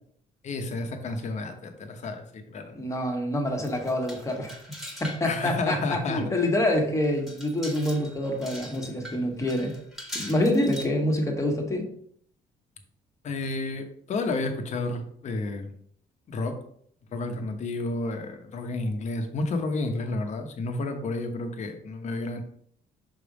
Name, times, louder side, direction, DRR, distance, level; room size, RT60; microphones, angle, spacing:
voice 1, 0.4-2.8 5.2-6.2 13.2-15.7 16.3-16.6 17.1-22.4, left 2 dB, 50° left, 5 dB, 1.1 m, -31 dB
voice 2, 2.7-4.6 5.0-9.7 10.1-11.9, left 1 dB, 20° left, 1 dB, 1.5 m, -26 dB
sound 1, 3.6-5.4 5.8-5.9 6.4-6.5 7.0-10.9, equal, ahead, 1.7 m, -42 dB
6.0 x 3.4 x 5.1 m, 0.65 s
cardioid pair, 110°, 15 cm